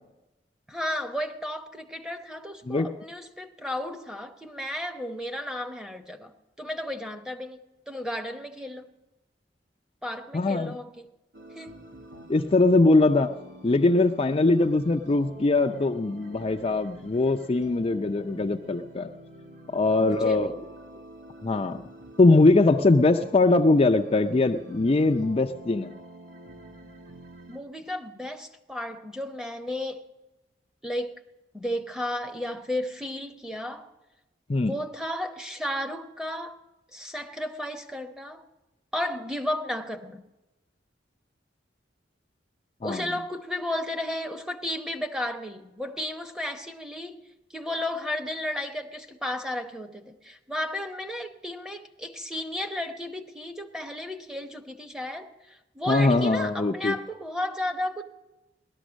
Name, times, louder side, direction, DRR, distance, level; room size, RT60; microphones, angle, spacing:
voice 1, 0.7-7.6 7.9-8.9 10.0-11.1 11.5-11.7 20.0-20.5 27.5-30.0 30.8-31.2 31.5-33.9 34.7-36.6 36.9-38.4 38.9-40.2 42.8-47.2 47.5-58.0, left 1 dB, 5° right, 0.9 m, -33 dB
voice 2, 10.3-10.8 12.3-13.3 13.6-19.1 19.7-20.5 21.4-21.8 22.2-25.9 34.5-34.7 42.8-43.0 55.9-57.0, left 2 dB, 35° left, 0.5 m, -21 dB
sound 1, 11.3-27.6, right 1 dB, 85° right, 1.6 m, -46 dB
17.5 x 12.5 x 6.2 m
head